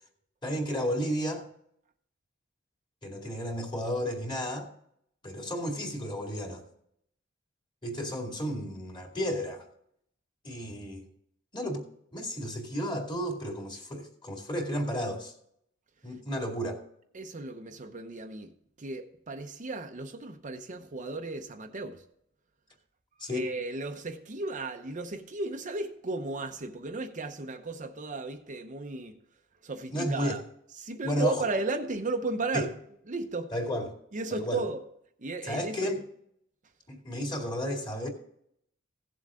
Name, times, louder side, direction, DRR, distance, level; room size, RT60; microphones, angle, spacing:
voice 1, 0.4-1.4 3.0-4.7 5.2-6.6 7.8-9.6 10.4-11.1 11.5-11.9 12.1-15.3 16.0-16.8 23.2-23.5 29.9-30.4 31.0-31.5 32.5-32.7 33.5-33.9 34.3-34.6 35.4-36.0 36.9-38.1, equal, 25° left, 2.2 m, -32 dB
voice 2, 17.1-18.5 18.8-22.0 23.3-29.1 29.6-30.4 30.8-32.7 33.1-33.5 34.1-34.8 35.2-35.8, right 3 dB, 40° right, 0.8 m, -34 dB
16.5 x 7.4 x 3.7 m
head